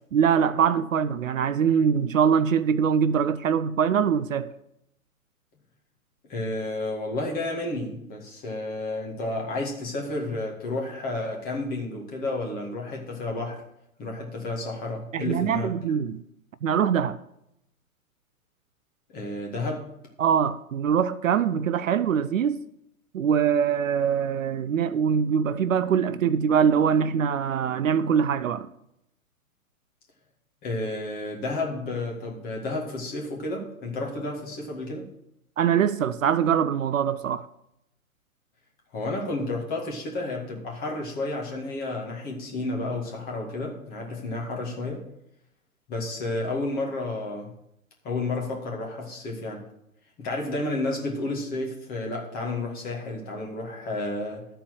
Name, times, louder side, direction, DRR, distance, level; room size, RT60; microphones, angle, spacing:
voice 1, 0.1-4.5 15.1-16.2 16.6-17.2 20.2-22.6 23.1-28.7 35.6-37.5, right 7 dB, 65° right, 0.6 m, -23 dB
voice 2, 6.3-13.6 14.0-15.7 19.1-19.9 30.6-35.1 38.9-45.0 45.9-47.5 48.0-49.6 50.2-54.5, left 2 dB, 20° left, 2.0 m, -31 dB
13.0 x 4.5 x 6.4 m
figure-of-eight pair, 130°, 43 cm